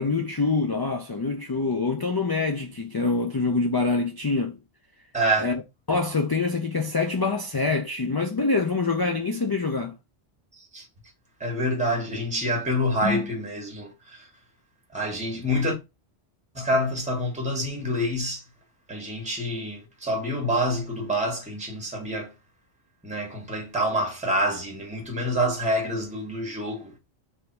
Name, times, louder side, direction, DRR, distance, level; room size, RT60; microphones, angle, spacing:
voice 1, 0.0-4.6 5.4-5.6 5.9-9.9 13.0-13.3, left 3 dB, 40° left, 0.3 m, -25 dB
voice 2, 5.1-5.5 10.7-10.8 11.4-14.3 14.9-15.7 16.5-18.4 18.9-22.3 23.0-26.9, equal, 5° right, 1.3 m, -27 dB
3.5 x 2.6 x 4.4 m
omnidirectional pair, 1.1 m